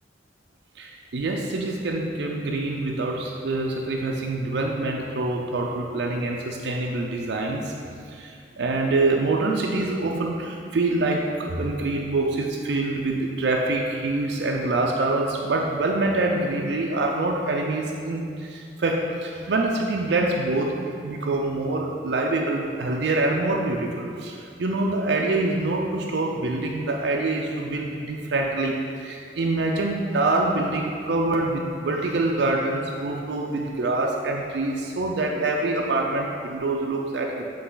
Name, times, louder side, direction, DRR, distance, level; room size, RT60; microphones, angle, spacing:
voice 1, 0.8-7.7 8.1-28.7 29.0-37.5, right 2 dB, 65° right, 0 dB, 0.5 m, -25 dB
7.8 x 3.3 x 3.9 m, 2.3 s
head